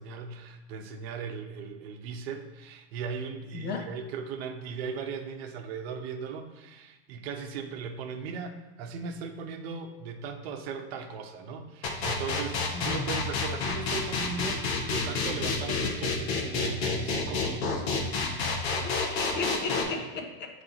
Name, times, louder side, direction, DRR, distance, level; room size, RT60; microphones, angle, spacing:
voice 1, 0.0-18.1, right 5 dB, 75° right, 5 dB, 0.8 m, -38 dB
voice 2, 3.5-3.9 12.7-13.0 18.8-20.6, left 4 dB, 35° left, 4 dB, 0.7 m, -35 dB
sound 1, 11.8-19.8, left 4 dB, 85° left, 1.1 m, -29 dB
7.2 x 3.4 x 3.9 m, 1.1 s
supercardioid pair, 145°, 31 cm